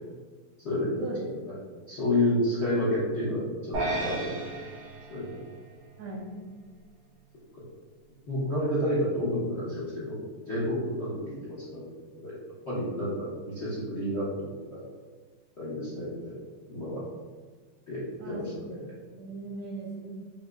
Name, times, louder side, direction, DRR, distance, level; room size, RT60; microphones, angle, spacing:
voice 1, 0.6-1.6 1.9-4.3 5.1-5.4 8.3-10.2 10.5-11.8 12.2-12.3 12.7-14.8 15.6-16.3 16.7-17.0 17.9-18.0 18.3-18.9, left 1 dB, 55° left, -10 dB, 0.7 m, -30 dB
sound 1, 3.7-6.2, right 2 dB, 65° right, 1.0 m, -34 dB
voice 2, 6.0-6.4 18.2-18.8 19.1-20.2, right 2 dB, 85° right, -4 dB, 2.0 m, -38 dB
5.5 x 2.1 x 2.4 m, 1.5 s
omnidirectional pair, 2.4 m